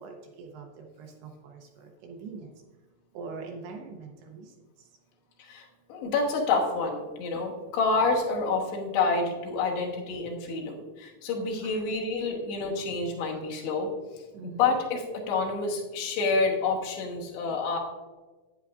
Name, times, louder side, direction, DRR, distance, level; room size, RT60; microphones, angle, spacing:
voice 1, 0.0-1.6 2.0-2.5 3.2-4.5 11.6-11.7 14.3-14.6, right 4 dB, 75° right, 2 dB, 2.6 m, -42 dB
voice 2, 5.4-17.8, left 4 dB, 75° left, -1 dB, 3.3 m, -28 dB
10.5 x 8.9 x 2.4 m, 1.3 s
omnidirectional pair, 5.1 m